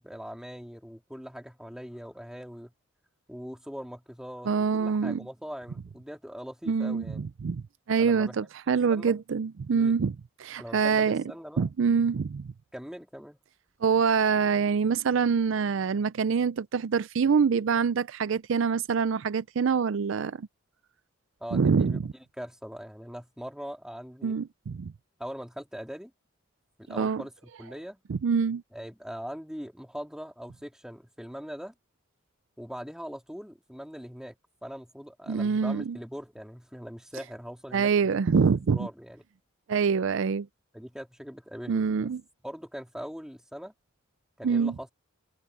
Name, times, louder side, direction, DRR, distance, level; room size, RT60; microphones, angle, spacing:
voice 1, 0.0-2.7 3.3-7.3 8.0-8.5 8.9-9.2 9.7-10.0 10.6-11.7 12.7-13.4 21.4-24.3 25.2-26.1 26.8-28.0 28.7-31.7 32.6-34.3 34.6-39.2 40.7-42.1 42.4-43.7 44.4-44.9, equal, 5° right, 3.4 m, -41 dB
voice 2, 4.5-5.2 6.7-11.2 11.6-12.5 13.8-20.5 21.5-22.1 24.2-24.9 26.9-27.2 28.1-28.6 35.3-36.0 37.7-38.9 39.7-40.5 41.7-42.2 44.4-44.7, right 6 dB, 60° right, 0.4 m, -25 dB
head